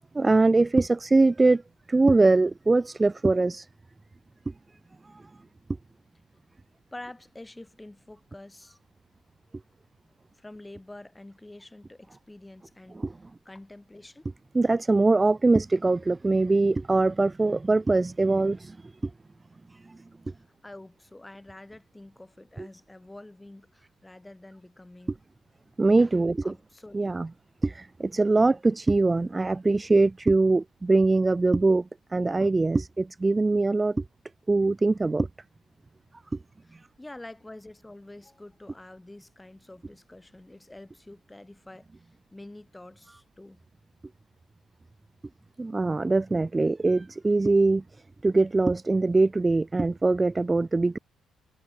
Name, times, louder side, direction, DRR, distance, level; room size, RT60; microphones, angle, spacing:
voice 1, 0.1-1.6 1.9-3.7 13.0-13.1 14.5-18.9 19.9-20.0 22.6-22.7 25.8-26.5 26.9-27.3 27.6-34.0 34.5-35.3 45.6-47.8 48.2-51.0, right 3 dB, 20° right, 0.6 m, -22 dB
voice 2, 6.9-8.8 10.3-13.1 13.4-14.3 20.3-25.2 26.4-27.1 36.6-43.6, left 1 dB, 10° left, 5.0 m, -47 dB
cardioid pair, 90°, 0 cm